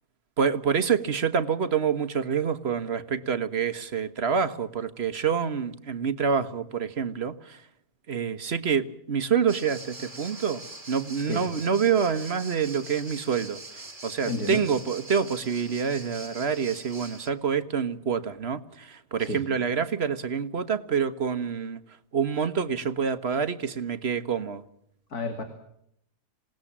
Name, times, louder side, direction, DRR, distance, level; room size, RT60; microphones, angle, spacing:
voice 1, 0.4-7.6 8.1-10.6 10.9-21.8 22.1-24.6, right 6 dB, 45° right, 12 dB, 1.5 m, -27 dB
sound 1, 9.5-17.3, right 2 dB, 25° right, 2.2 m, -43 dB
voice 2, 14.3-14.6 19.2-19.4 25.1-25.4, left 3 dB, 80° left, 6 dB, 3.0 m, -31 dB
27.5 x 18.0 x 7.4 m, 0.74 s
omnidirectional pair, 1.6 m